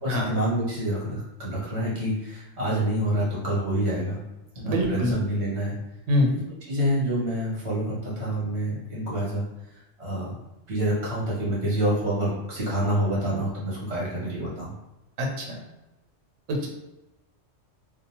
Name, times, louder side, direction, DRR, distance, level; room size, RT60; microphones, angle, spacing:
voice 1, 0.0-4.2 4.5-5.8 6.3-6.4 6.7-9.4 10.0-10.3 10.7-14.7, right 1 dB, 65° right, -6 dB, 1.4 m, -27 dB
voice 2, 4.6-5.1 6.1-6.3 15.2-15.6 16.5-16.7, left 1 dB, 85° right, 0 dB, 1.0 m, -24 dB
2.8 x 2.1 x 2.8 m, 0.98 s
omnidirectional pair, 1.2 m